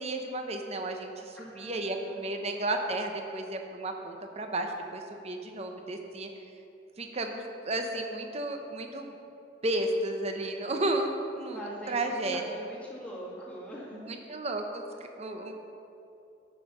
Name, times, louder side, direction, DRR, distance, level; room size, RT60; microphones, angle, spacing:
voice 1, 0.0-6.3 7.0-9.1 9.6-11.6 11.9-12.4 13.9-14.8 15.2-15.5, right 2 dB, 35° right, 4 dB, 0.8 m, -33 dB
voice 2, 1.4-2.3 11.5-14.1, equal, 5° left, -6 dB, 1.8 m, -43 dB
9.2 x 5.4 x 6.6 m, 2.7 s
head